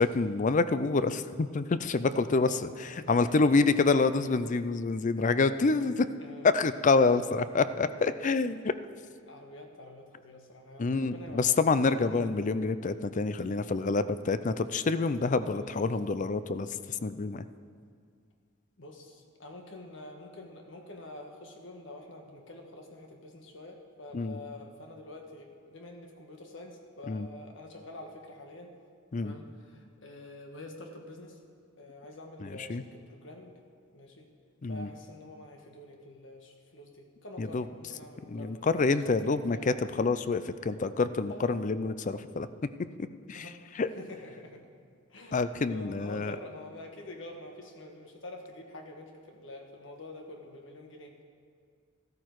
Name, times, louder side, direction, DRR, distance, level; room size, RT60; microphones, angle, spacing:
voice 1, 0.0-6.1 6.4-8.7 10.8-16.7 17.0-17.4 24.1-24.4 27.1-27.3 29.1-29.3 32.7-32.8 34.6-34.9 37.4-37.6 38.3-42.5 43.3-43.5 43.8-43.9 45.3-46.4, left 3 dB, 40° left, 13 dB, 0.5 m, -27 dB
voice 2, 2.4-2.7 3.0-3.4 6.2-6.5 9.2-11.5 12.1-12.3 13.4-13.5 15.4-15.9 18.8-28.7 29.2-31.4 31.8-33.5 33.9-34.3 34.7-39.7 41.3-41.7 43.3-43.6 43.9-44.6 45.1-51.2, left 2 dB, 70° left, 2 dB, 1.5 m, -47 dB
13.5 x 13.0 x 4.7 m, 2.1 s
head